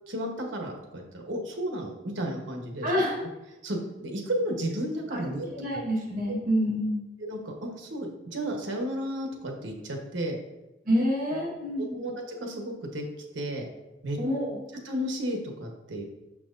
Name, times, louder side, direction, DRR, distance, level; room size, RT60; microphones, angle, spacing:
voice 1, 0.1-2.9 3.6-5.5 7.2-10.4 11.9-13.0 13.3-13.7 14.0-14.2 14.8-16.0, right 1 dB, 75° right, 2 dB, 1.1 m, -33 dB
voice 2, 2.8-3.2 5.1-5.2 5.5-7.0 10.8-12.0 14.2-14.6, equal, 50° right, -4 dB, 1.5 m, -27 dB
6.2 x 5.9 x 2.6 m, 0.99 s
head